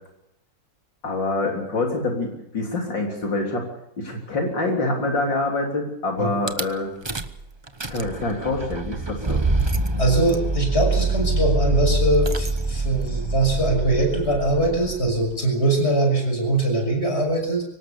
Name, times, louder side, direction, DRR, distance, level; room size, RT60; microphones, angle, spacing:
voice 1, 1.0-3.7 4.0-6.9 7.9-9.4, left 2 dB, 80° left, 1 dB, 4.2 m, -26 dB
Rattle / Car / Engine starting, 6.5-6.6 7.1-7.4 7.7-15.4, right 2 dB, 20° right, 0.7 m, -25 dB
voice 2, 10.0-17.6, right 2 dB, 35° left, 3 dB, 6.5 m, -22 dB
24.0 x 19.0 x 6.9 m, 0.77 s
omnidirectional pair, 2.0 m